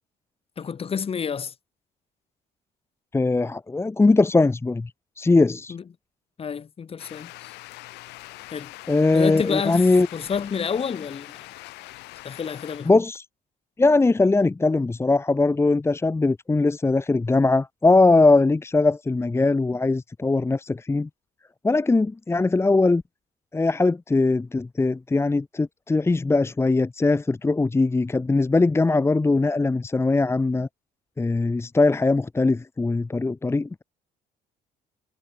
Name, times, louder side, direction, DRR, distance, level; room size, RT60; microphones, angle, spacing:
voice 1, 0.6-1.5 5.7-5.8 6.4-7.5 8.5-8.7 9.1-11.5 12.2-12.9, left 6 dB, 35° left, 1.9 m, -29 dB
voice 2, 3.1-5.8 8.9-10.1 12.8-13.2 13.8-21.1 21.6-23.0 23.5-30.7 31.2-33.8, left 3 dB, 15° left, 1.0 m, -21 dB
sound 1, 7.0-12.9, left 20 dB, 90° left, 2.5 m, -43 dB
cardioid pair, 110°, 17 cm